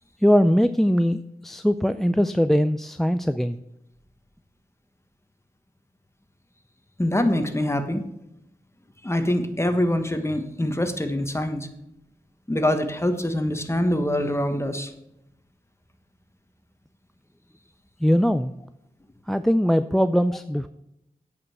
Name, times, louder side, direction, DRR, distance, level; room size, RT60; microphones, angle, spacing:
voice 1, 0.2-3.6 18.0-18.5 19.3-20.7, equal, ahead, 12 dB, 0.3 m, -21 dB
voice 2, 7.0-8.0 9.0-11.7 12.5-14.9, left 1 dB, 15° left, 8 dB, 1.3 m, -24 dB
8.5 x 5.4 x 7.7 m, 0.82 s
cardioid pair, 50°, 15 cm